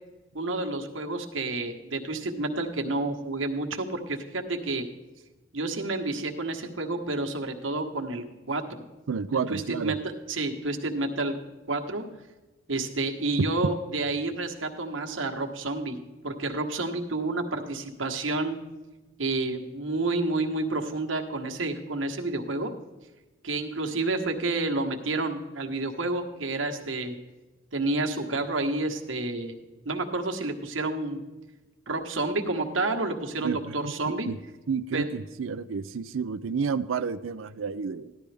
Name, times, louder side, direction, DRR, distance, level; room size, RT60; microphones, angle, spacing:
voice 1, 0.3-4.8 5.5-8.6 9.5-10.0 10.3-11.3 11.7-12.0 12.7-16.0 16.2-18.6 19.2-22.7 23.4-27.2 27.7-29.5 29.8-31.2 31.9-34.3 34.9-35.0, right 2 dB, 75° right, 2 dB, 1.4 m, -29 dB
voice 2, 9.1-10.0 33.4-34.4 34.7-38.1, right 5 dB, 90° right, 12 dB, 0.5 m, -31 dB
14.5 x 11.5 x 3.4 m, 1.2 s
head